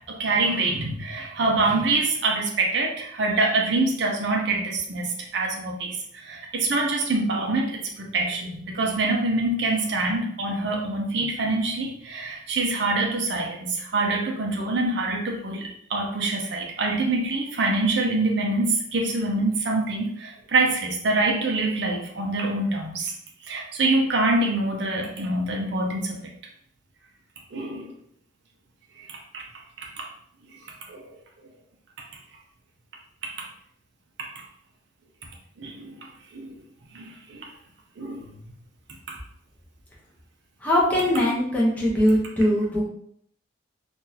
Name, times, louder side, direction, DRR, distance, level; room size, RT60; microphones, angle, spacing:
voice 1, 0.2-5.1 5.3-5.9 6.3-23.1 23.5-26.2 27.5-27.9 29.3-29.4 30.9-31.0 34.2-34.3 35.6-35.9 36.3-36.5 36.9-37.4 38.0-38.2, right 2 dB, 60° right, 0 dB, 0.6 m, -25 dB
voice 2, 40.6-42.8, equal, 10° left, -6 dB, 0.9 m, -21 dB
3.7 x 2.5 x 2.8 m, 0.67 s
head